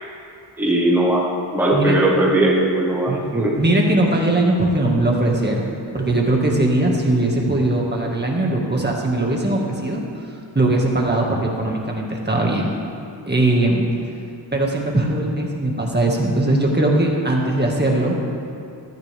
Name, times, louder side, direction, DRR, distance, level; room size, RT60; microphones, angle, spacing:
voice 1, 0.6-1.3 1.5-3.6, right 1 dB, 5° right, -6 dB, 1.4 m, -18 dB
voice 2, 3.6-10.0 10.6-12.7 13.3-13.9 14.5-18.2, right 1 dB, 20° right, -1 dB, 1.9 m, -20 dB
21.5 x 13.5 x 3.5 m, 2.6 s
wide cardioid pair, 175°, 45 cm